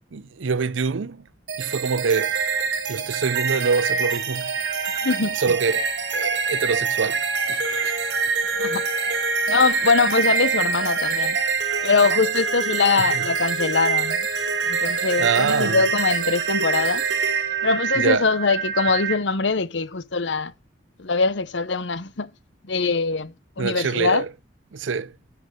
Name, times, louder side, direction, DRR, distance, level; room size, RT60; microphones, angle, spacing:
voice 1, 0.1-1.2 1.6-2.3 2.9-4.5 5.4-5.9 6.1-7.2 7.5-8.0 13.0-13.2 15.2-15.8 18.0-18.3 23.6-24.3 24.7-25.1, right 5 dB, 90° right, 0.6 m, -25 dB
sound 1, 1.5-19.1, right 5 dB, 70° right, 2.1 m, -25 dB
voice 2, 5.0-5.4 8.6-8.9 9.5-11.4 11.8-14.3 14.6-17.0 17.6-20.5 21.0-22.3 22.6-24.2, left 4 dB, 70° left, 0.8 m, -22 dB
10.0 x 6.1 x 6.4 m
head